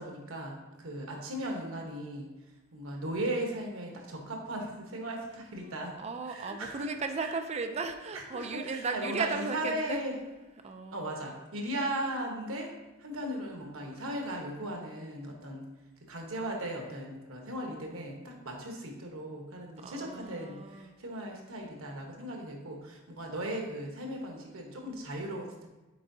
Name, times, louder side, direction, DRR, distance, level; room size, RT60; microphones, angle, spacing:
voice 1, 0.0-2.3 2.7-6.0 6.3-6.9 7.2-7.3 8.1-10.1 10.9-12.7 13.0-15.6 16.1-25.7, right 1 dB, 90° right, 1 dB, 1.1 m, -37 dB
voice 2, 6.0-10.0 10.6-11.1 19.8-21.0, right 4 dB, 30° right, 7 dB, 0.4 m, -36 dB
7.6 x 4.6 x 2.7 m, 1.1 s
head